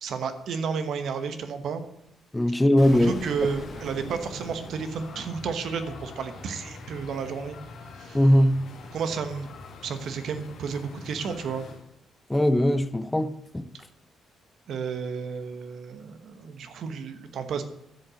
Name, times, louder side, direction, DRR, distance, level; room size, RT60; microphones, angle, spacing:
voice 1, 0.0-1.8 3.0-7.6 8.0-8.2 8.9-9.5 9.8-11.6 14.7-17.6, right 6 dB, 65° right, 1.2 m, -32 dB
voice 2, 2.3-3.1 8.1-8.6 12.3-13.6, equal, 10° left, 0.7 m, -20 dB
Explosion, 2.8-5.7, left 1 dB, 35° left, 2.6 m, -42 dB
sound 1, 3.4-11.9, left 3 dB, 70° left, 1.8 m, -44 dB
10.5 x 5.5 x 7.6 m
cardioid pair, 90°, 0 cm